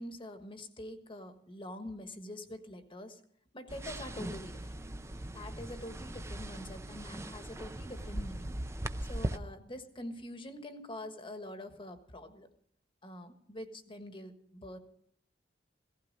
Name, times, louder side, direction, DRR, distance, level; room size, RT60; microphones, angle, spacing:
voice 1, 0.0-3.2 3.5-4.8 5.3-8.5 9.0-12.5 13.0-14.8, left 1 dB, 30° left, 8 dB, 1.4 m, -45 dB
sound 1, 3.7-9.4, right 1 dB, 15° right, 0.6 m, -39 dB
16.5 x 15.0 x 5.3 m, 0.65 s
head